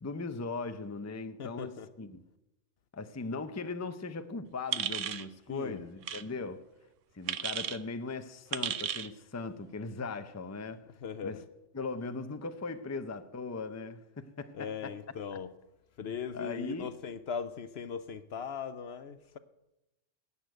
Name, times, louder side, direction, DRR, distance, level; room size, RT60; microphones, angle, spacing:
voice 1, 0.0-2.2 2.9-6.7 7.1-10.9 11.2-11.4 11.7-15.0 16.0-16.9, left 3 dB, 15° left, 0.6 m, -39 dB
voice 2, 1.4-1.9 5.5-5.8 11.0-11.4 14.5-15.5 16.0-19.4, left 6 dB, 60° left, 0.9 m, -39 dB
sound 1, 4.7-5.3 6.0-6.2 7.3-7.8 8.5-9.1, right 9 dB, 85° right, 1.1 m, -33 dB
20.0 x 7.1 x 9.1 m
omnidirectional pair, 1.2 m